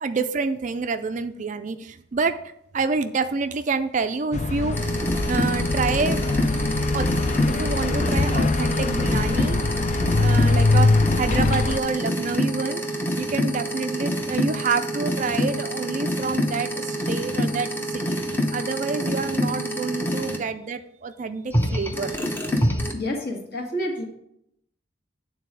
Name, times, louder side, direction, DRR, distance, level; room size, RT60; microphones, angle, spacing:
voice 1, 0.0-2.4 2.7-5.0 5.3-6.3 6.9-7.1 7.5-9.7 10.1-10.9 11.2-22.1, right 4 dB, 40° right, 9 dB, 0.4 m, -28 dB
sound 1, 4.3-11.8, left 3 dB, 35° left, 0.4 m, -22 dB
sound 2, 4.7-20.4 21.5-22.9, equal, 10° left, 0.8 m, -26 dB
voice 2, 22.9-24.0, left 1 dB, 50° left, 0 dB, 1.8 m, -29 dB
8.9 x 4.0 x 6.2 m, 0.77 s
head